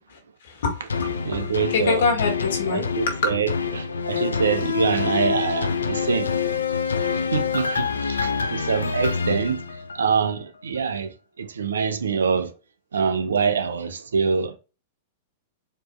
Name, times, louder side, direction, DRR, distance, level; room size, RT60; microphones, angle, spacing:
voice 1, 0.4-3.3, left 5 dB, 70° left, 1.8 m, -25 dB
sound 1, 0.9-10.3 10.8-10.9, left 6 dB, 90° left, 0.5 m, -26 dB
voice 2, 1.2-2.0 2.7-6.3 7.3-9.6 9.9-12.5 12.9-14.6, right 6 dB, 80° right, 0.7 m, -25 dB
4.4 x 3.1 x 3.1 m
hypercardioid pair, 105°, 0 cm